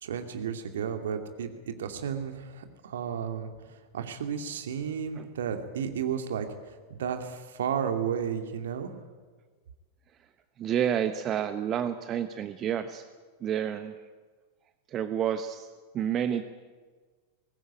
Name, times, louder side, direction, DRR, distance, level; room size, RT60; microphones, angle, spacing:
voice 1, 0.0-3.5 3.9-6.5 6.9-8.9, right 7 dB, 60° right, 6 dB, 2.4 m, -32 dB
voice 2, 10.6-13.0 13.4-13.9 14.9-15.7 15.9-16.4, right 9 dB, 30° right, 11 dB, 1.0 m, -29 dB
22.0 x 19.0 x 9.1 m, 1.4 s
figure-of-eight pair, 90°, 0 cm